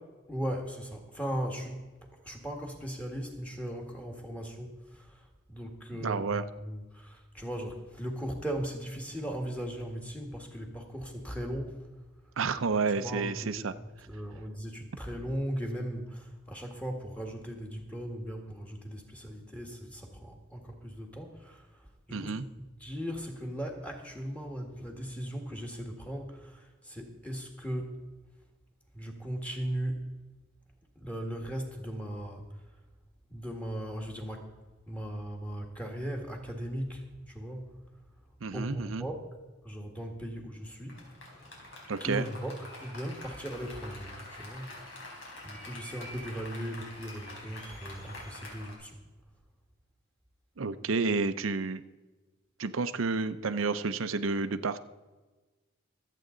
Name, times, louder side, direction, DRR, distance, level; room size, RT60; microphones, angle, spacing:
voice 1, 0.3-1.8 2.2-11.9 12.9-13.7 14.1-28.0 28.9-30.0 31.0-32.6 33.3-34.5 34.9-37.7 38.5-39.2 39.6-41.0 41.3-41.5 42.0-42.5 42.8-44.7 45.4-49.0, equal, 5° left, 2 dB, 1.8 m, -38 dB
voice 2, 6.0-6.4 12.4-13.7 22.1-22.4 38.4-39.0 41.9-42.3 50.6-51.8 52.6-54.8, right 4 dB, 80° right, 10 dB, 0.6 m, -30 dB
Applause, 40.9-48.7, left 1 dB, 70° left, 4.3 m, -46 dB
25.0 x 8.4 x 3.9 m, 1.2 s
head